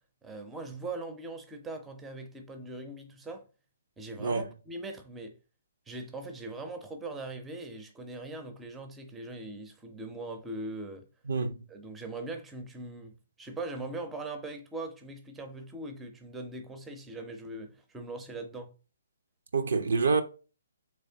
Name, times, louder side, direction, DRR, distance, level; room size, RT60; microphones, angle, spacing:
voice 1, 0.2-3.4 4.0-5.3 5.9-11.0 11.7-18.7, right 2 dB, 10° right, 0.6 m, -41 dB
voice 2, 4.2-4.5 11.3-11.6 19.5-20.2, right 4 dB, 65° right, 0.5 m, -27 dB
3.4 x 3.2 x 2.7 m
figure-of-eight pair, 135°, 0 cm